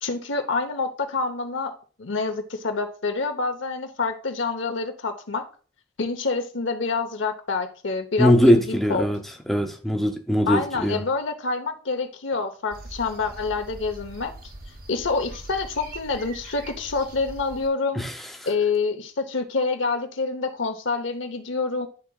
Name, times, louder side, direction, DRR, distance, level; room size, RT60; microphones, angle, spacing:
voice 1, 0.0-5.4 6.0-9.1 10.5-14.3 14.9-18.0 18.5-21.9, left 4 dB, 85° left, 0.9 m, -27 dB
voice 2, 8.2-9.2 9.5-11.0 18.0-18.1, equal, ahead, 0.5 m, -20 dB
sound 1, 12.7-17.7, right 2 dB, 50° right, 0.9 m, -42 dB
11.0 x 3.9 x 2.3 m
head